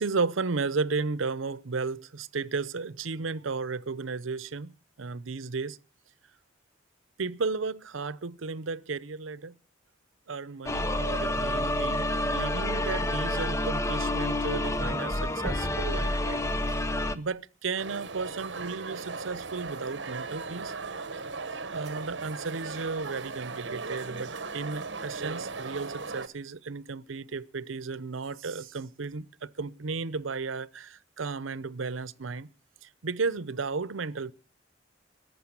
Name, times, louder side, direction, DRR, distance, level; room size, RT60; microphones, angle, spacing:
voice 1, 0.0-5.8 7.2-9.5 10.3-16.4 16.7-20.7 21.7-32.5 32.8-34.3, right 4 dB, 90° right, 0.8 m, -34 dB
sound 1, 10.7-17.2, left 1 dB, 15° left, 0.8 m, -28 dB
sound 2, 17.8-26.3, right 4 dB, 65° right, 1.2 m, -37 dB
14.5 x 10.5 x 8.8 m
head